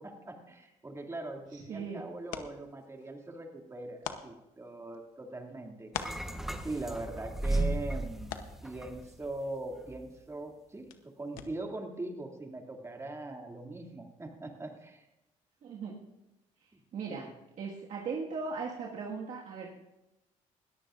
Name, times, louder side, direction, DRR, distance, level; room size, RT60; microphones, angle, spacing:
voice 1, 0.0-5.9 6.6-15.1 17.1-17.3, right 2 dB, 20° right, 2 dB, 2.5 m, -41 dB
sound 1, 1.1-11.9, left 9 dB, 85° left, 0.9 m, -48 dB
voice 2, 1.5-2.0 15.6-15.9 16.9-17.3 17.6-19.7, right 5 dB, 60° right, -3 dB, 1.9 m, -38 dB
sound 2, 5.9-9.4 9.7-10.0, right 2 dB, ahead, 1.1 m, -35 dB
20.0 x 14.0 x 2.6 m, 0.95 s
supercardioid pair, 75°, 14 cm